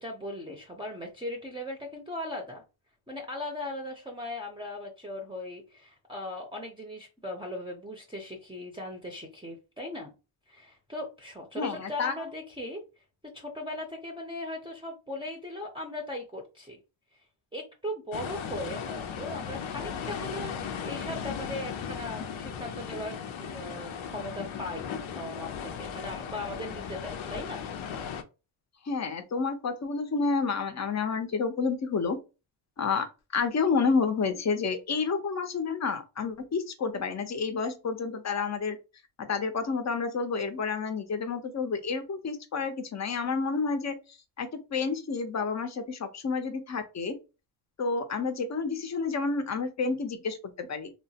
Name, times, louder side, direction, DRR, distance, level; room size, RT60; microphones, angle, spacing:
voice 1, 0.0-2.6 3.1-10.1 10.5-12.8 13.2-16.8 17.5-27.6, left 1 dB, 10° right, 0.6 m, -38 dB
voice 2, 11.6-12.1 28.9-32.2 32.8-33.1 33.3-38.8 39.2-44.0 44.4-47.1 47.8-50.9, left 4 dB, 35° left, 0.6 m, -29 dB
sound 1, 18.1-28.2, left 7 dB, 75° left, 0.6 m, -37 dB
2.9 x 2.0 x 2.7 m
cardioid pair, 80°, 48 cm